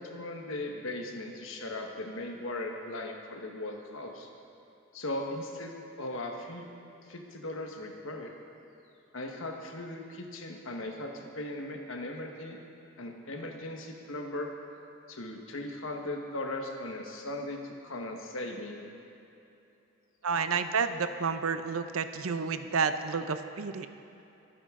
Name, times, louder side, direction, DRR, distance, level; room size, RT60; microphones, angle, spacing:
voice 1, 0.0-4.3 4.9-6.6 7.1-8.3 9.1-12.6 13.0-14.5 15.1-18.8, left 1 dB, 65° left, 2 dB, 1.3 m, -38 dB
voice 2, 20.2-23.9, right 5 dB, 85° right, 10 dB, 0.6 m, -30 dB
22.5 x 9.3 x 3.7 m, 2.9 s
head